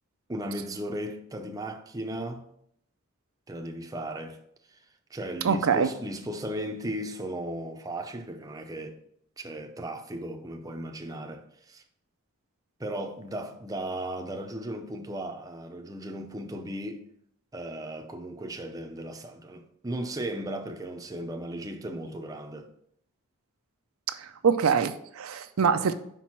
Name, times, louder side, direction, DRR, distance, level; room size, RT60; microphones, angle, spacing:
voice 1, 0.3-2.4 3.5-4.4 4.7-4.8 5.1-9.0 9.4-11.8 12.8-17.1 17.5-22.7, right 1 dB, 15° right, 0.6 m, -36 dB
voice 2, 5.4-5.9 24.1-25.9, right 6 dB, 80° right, 0.5 m, -24 dB
5.2 x 4.5 x 5.8 m
head